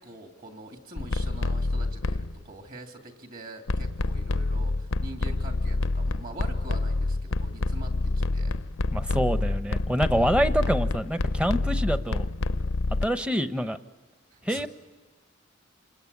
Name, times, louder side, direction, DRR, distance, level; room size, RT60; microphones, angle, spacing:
voice 1, 0.0-8.6 10.1-10.4 14.3-14.7, right 2 dB, 45° right, 4 dB, 3.1 m, -44 dB
sound 1, 1.0-2.4 3.7-13.1, left 2 dB, 85° left, 0.7 m, -27 dB
voice 2, 8.9-12.3 13.0-13.8 14.4-14.7, equal, 5° right, 11 dB, 0.8 m, -26 dB
28.0 x 21.0 x 8.6 m, 1.4 s
head